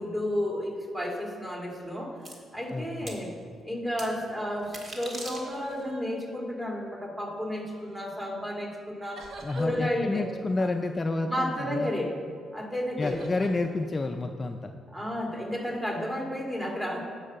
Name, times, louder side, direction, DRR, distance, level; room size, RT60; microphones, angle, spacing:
voice 1, 0.0-2.2 2.5-3.3 3.6-9.3 9.6-10.7 11.3-12.2 12.5-13.2 14.9-17.0, left 1 dB, 15° right, 0 dB, 2.1 m, -32 dB
sound 1, 2.2-2.3 3.1-3.2 4.0-4.1 4.6-5.8, right 1 dB, 35° right, 1.7 m, -40 dB
voice 2, 2.7-3.1 9.4-11.9 13.0-14.8, left 2 dB, 25° left, 5 dB, 0.4 m, -30 dB
sound 2, 5.1-6.9 7.6-8.0 9.2-9.7 13.0-13.5, right 2 dB, 60° right, 1.1 m, -46 dB
9.9 x 5.5 x 6.9 m, 2.2 s
cardioid pair, 90°, 0 cm